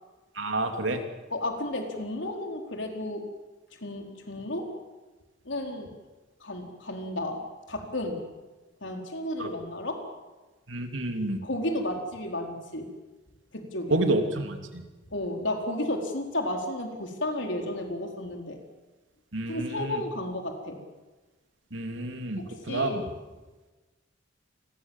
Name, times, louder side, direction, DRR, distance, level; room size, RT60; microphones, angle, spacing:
voice 1, 0.4-1.0 9.4-9.5 10.7-11.4 13.9-14.8 19.3-20.0 21.7-23.0, right 2 dB, 85° right, 5 dB, 3.0 m, -29 dB
voice 2, 1.3-3.3 3.7-4.7 5.4-5.9 6.4-7.4 7.7-8.2 8.8-10.0 11.4-12.9 13.5-14.0 15.1-18.6 19.5-20.8 22.4-23.0, left 1 dB, 70° left, 3 dB, 4.6 m, -32 dB
28.5 x 22.0 x 7.4 m, 1.2 s
head